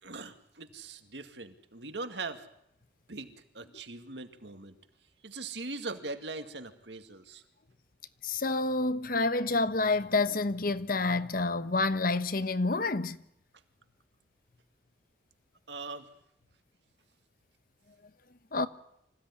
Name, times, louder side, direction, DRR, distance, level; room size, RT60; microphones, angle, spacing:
voice 1, 0.0-2.5 3.1-4.8 5.2-7.4 15.7-16.1, right 3 dB, 70° right, 2.2 m, -41 dB
voice 2, 8.2-13.2 18.5-18.7, left 3 dB, 50° left, 1.0 m, -28 dB
26.0 x 16.0 x 9.9 m
head